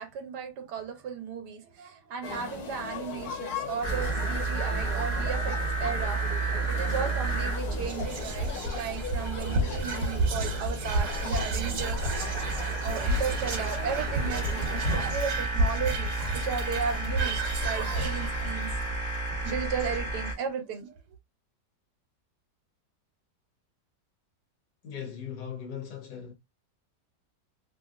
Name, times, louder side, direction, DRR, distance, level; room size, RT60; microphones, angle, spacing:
voice 1, 0.0-6.2 6.7-12.1 12.8-18.7 19.4-21.0, right 7 dB, 75° right, 1.3 m, -35 dB
sound 1, 2.2-15.1, left 5 dB, 60° left, 1.3 m, -39 dB
sound 2, 3.8-20.3, right 3 dB, 10° right, 0.5 m, -32 dB
Whispering, 7.8-20.3, right 1 dB, 55° right, 1.0 m, -32 dB
voice 2, 24.8-26.3, left 8 dB, 80° left, 1.4 m, -38 dB
3.0 x 2.5 x 2.4 m
omnidirectional pair, 1.9 m